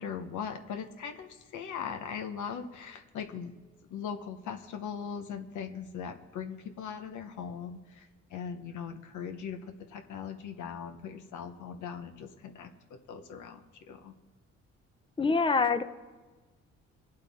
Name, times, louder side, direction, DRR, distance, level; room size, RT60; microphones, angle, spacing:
voice 1, 0.0-3.5 3.9-14.1, left 7 dB, 75° left, 7 dB, 1.0 m, -40 dB
voice 2, 15.2-15.8, left 4 dB, 15° left, 11 dB, 0.7 m, -25 dB
20.5 x 8.1 x 3.6 m, 1.3 s
cardioid pair, 90°, 30 cm